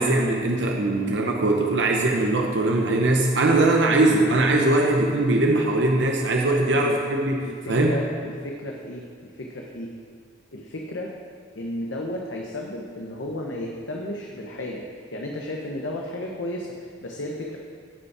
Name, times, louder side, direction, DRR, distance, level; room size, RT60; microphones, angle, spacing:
voice 1, 0.0-7.9, right 2 dB, 70° right, 1 dB, 0.8 m, -21 dB
voice 2, 6.7-7.0 7.4-9.9 10.5-11.1 11.5-14.8 15.1-17.6, left 1 dB, 80° left, 0 dB, 0.9 m, -33 dB
15.5 x 5.3 x 4.8 m, 2.1 s
head